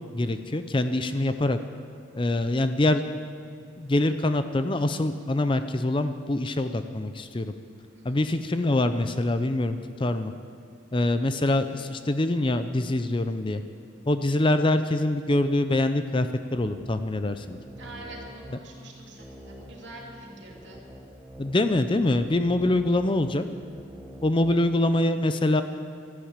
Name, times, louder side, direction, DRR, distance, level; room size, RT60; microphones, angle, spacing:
voice 1, 0.1-1.6 2.2-3.0 3.8-7.5 8.0-10.3 10.9-13.6 14.1-17.6 21.4-23.4 24.2-25.6, left 1 dB, 25° left, 10 dB, 0.5 m, -24 dB
sound 1, 16.5-24.6, equal, 15° right, 1.1 m, -46 dB
voice 2, 17.8-20.8, right 1 dB, 60° right, -2 dB, 3.0 m, -45 dB
13.5 x 11.5 x 8.8 m, 2.2 s
head